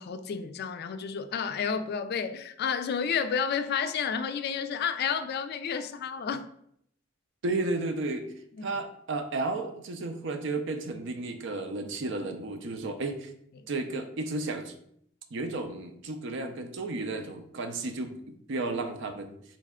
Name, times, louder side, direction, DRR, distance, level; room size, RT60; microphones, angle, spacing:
voice 1, 0.0-6.5 8.6-8.8, left 6 dB, 50° left, 0.3 m, -31 dB
voice 2, 7.4-8.2 8.6-13.3 13.7-14.7 15.3-19.4, right 2 dB, 65° right, 0.5 m, -33 dB
4.1 x 3.2 x 3.6 m
head